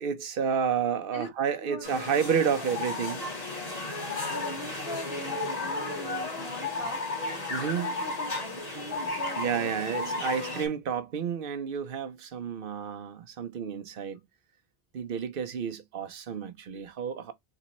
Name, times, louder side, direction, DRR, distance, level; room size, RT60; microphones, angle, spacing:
voice 1, 0.0-3.3 7.5-7.9 9.4-14.2 14.9-17.3, right 7 dB, 65° right, 0.8 m, -30 dB
voice 2, 1.6-2.2 2.6-2.7 4.3-7.0 7.3-10.6, left 1 dB, 65° left, 1.6 m, -41 dB
sound 1, 1.8-10.7, left 2 dB, 40° left, 1.6 m, -34 dB
3.2 x 3.1 x 4.1 m
omnidirectional pair, 1.0 m